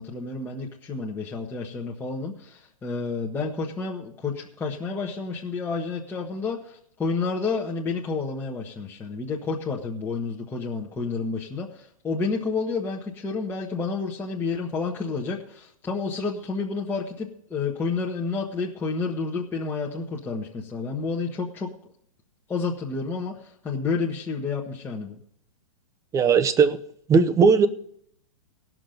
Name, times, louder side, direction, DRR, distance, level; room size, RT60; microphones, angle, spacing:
voice 1, 0.0-21.7 22.5-25.1, left 4 dB, 10° left, -2 dB, 1.2 m, -30 dB
voice 2, 26.1-26.8 27.1-27.7, right 5 dB, 20° right, 12 dB, 0.8 m, -18 dB
17.5 x 6.2 x 5.1 m, 0.65 s
hypercardioid pair, 125°, 18 cm